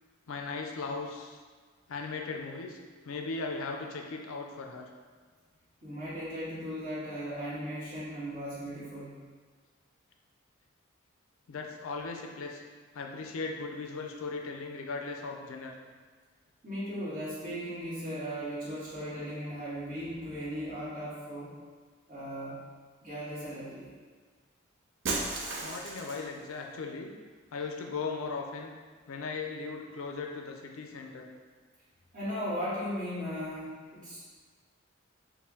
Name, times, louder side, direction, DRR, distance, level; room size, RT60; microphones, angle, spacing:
voice 1, 0.3-1.4 1.9-2.8 3.0-4.9 11.5-12.6 12.9-15.8 25.6-27.2 27.5-28.7 29.1-31.3, left 4 dB, 80° left, 2 dB, 0.4 m, -38 dB
voice 2, 5.8-9.1 16.6-21.5 22.1-22.6 23.0-23.9 32.1-34.2, equal, 40° right, -10 dB, 1.4 m, -37 dB
Shatter, 25.0-26.4, right 3 dB, 60° right, 0.5 m, -34 dB
4.4 x 2.1 x 3.5 m, 1.5 s
head